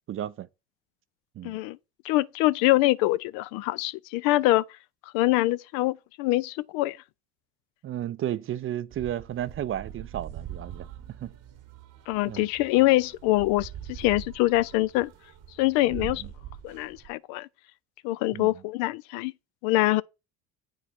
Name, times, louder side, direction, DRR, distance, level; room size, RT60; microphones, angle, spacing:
voice 1, 0.1-0.5 1.4-1.6 7.8-10.9 11.2-11.3 12.3-12.5 15.9-16.1 18.3-18.5, right 11 dB, 35° right, 0.5 m, -33 dB
voice 2, 1.4-1.8 2.0-4.6 5.1-7.0 12.1-15.1 15.6-16.2 16.6-17.5 18.0-19.3 19.6-20.0, left 18 dB, 70° left, 0.5 m, -24 dB
sound 1, 8.9-17.1, right 10 dB, 55° right, 1.1 m, -43 dB
8.2 x 4.7 x 4.3 m
hypercardioid pair, 75°, 37 cm